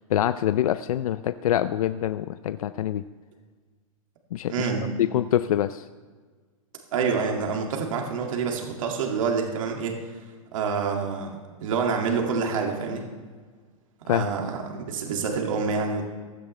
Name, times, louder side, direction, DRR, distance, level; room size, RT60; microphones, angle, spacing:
voice 1, 0.1-3.0 4.3-4.7 5.0-5.9 14.1-14.3, left 11 dB, 85° left, 13 dB, 0.5 m, -25 dB
voice 2, 4.5-4.9 6.9-10.1 10.5-11.3 11.6-13.0 14.1-16.1, right 5 dB, 65° right, 1 dB, 2.3 m, -27 dB
15.5 x 12.5 x 3.3 m, 1.5 s
supercardioid pair, 160°, 18 cm